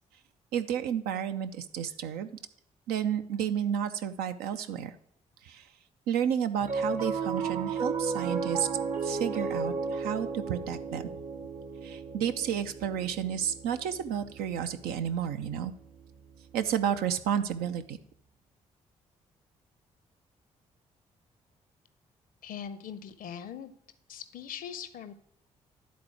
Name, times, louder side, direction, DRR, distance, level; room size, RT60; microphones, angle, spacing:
voice 1, 0.5-2.3 2.9-4.9 5.4-5.7 6.1-8.7 9.0-11.1 11.8-15.7 16.5-18.0, right 9 dB, 65° right, 9 dB, 0.6 m, -31 dB
Piano, 6.6-17.1, right 4 dB, 45° right, 0.9 m, -35 dB
voice 2, 22.4-23.7 24.1-25.1, left 8 dB, 55° left, 13 dB, 0.7 m, -41 dB
10.5 x 4.1 x 4.8 m, 0.68 s
figure-of-eight pair, 40°, 17 cm